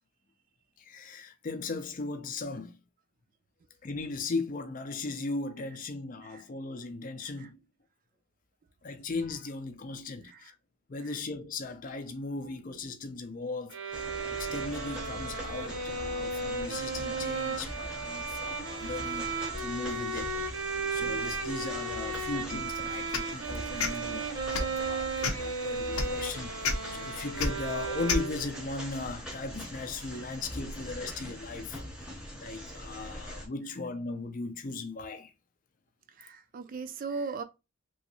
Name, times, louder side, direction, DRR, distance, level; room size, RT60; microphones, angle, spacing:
voice 1, 0.8-2.8 3.8-7.6 8.8-10.6 10.9-31.8 32.4-35.3, left 3 dB, 40° left, 0.4 m, -38 dB
sound 1, 13.7-28.7, right 4 dB, 70° right, 0.7 m, -35 dB
sound 2, 13.9-33.5, equal, 5° right, 0.7 m, -42 dB
sound 3, 23.1-23.3 23.8-23.9 24.5-24.7 25.2-25.5 25.9-26.1 26.6-26.7 27.4-27.5 28.1-28.2, left 4 dB, 80° left, 0.6 m, -28 dB
voice 2, 36.1-37.4, right 4 dB, 40° right, 0.3 m, -40 dB
3.1 x 2.6 x 2.8 m
head